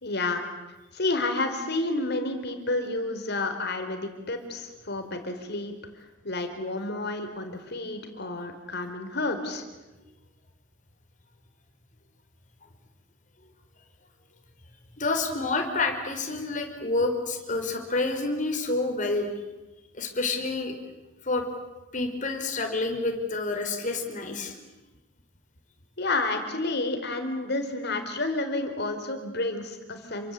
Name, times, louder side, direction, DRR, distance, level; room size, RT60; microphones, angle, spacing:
voice 1, 0.0-0.4 0.9-5.7 6.2-9.6 26.0-30.3, left 2 dB, 60° left, 7 dB, 4.4 m, -30 dB
voice 2, 15.0-19.3 20.0-20.7 21.2-21.5 21.9-24.5, left 3 dB, 40° left, 4 dB, 4.9 m, -28 dB
29.0 x 24.5 x 8.4 m, 1.1 s
head